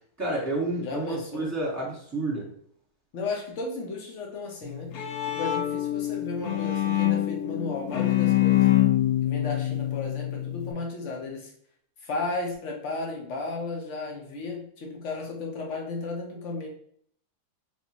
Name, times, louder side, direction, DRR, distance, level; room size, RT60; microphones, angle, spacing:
voice 1, 0.2-2.5, right 2 dB, 10° right, -4 dB, 1.4 m, -30 dB
voice 2, 0.8-1.5 3.1-4.9 5.2-8.7 9.2-11.5 12.0-16.7, left 3 dB, 50° left, 0 dB, 1.3 m, -34 dB
Bowed string instrument, 4.6-10.7, left 14 dB, 70° left, 1.2 m, -25 dB
4.3 x 3.4 x 3.0 m, 0.63 s
omnidirectional pair, 1.7 m